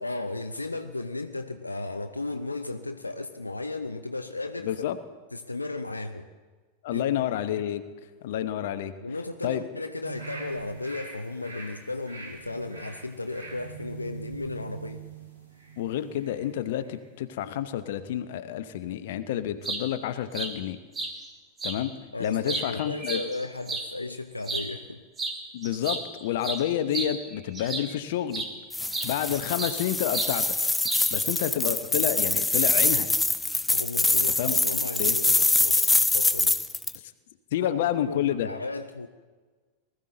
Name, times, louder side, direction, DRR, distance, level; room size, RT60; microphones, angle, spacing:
voice 1, 0.0-4.7 5.3-6.3 6.9-7.1 9.0-15.0 22.1-25.0 33.7-36.5 37.6-39.1, left 2 dB, 85° left, 7 dB, 0.5 m, -35 dB
voice 2, 4.6-5.0 6.8-7.8 8.2-8.9 9.4-9.6 15.8-20.8 21.6-21.9 22.2-23.2 25.5-28.5 29.0-30.6 31.1-33.1 34.1-34.6 35.0-35.2 37.5-38.5, left 11 dB, 55° left, 11 dB, 0.8 m, -29 dB
sound 1, 10.0-16.5 16.8-16.9, right 5 dB, 85° right, 5.2 m, -44 dB
sound 2, 19.4-19.8 20.3-20.5 20.9-21.1 21.6-21.8 22.2-23.9 24.4-24.7 25.2-25.4 25.6-28.0 28.3-28.5 28.9-29.8 30.1-30.3 30.8-31.2, right 3 dB, 20° right, 1.9 m, -32 dB
sound 3, 28.7-37.0, left 2 dB, 10° left, 0.5 m, -24 dB
19.5 x 13.5 x 3.9 m, 1.4 s
figure-of-eight pair, 90°, 0 cm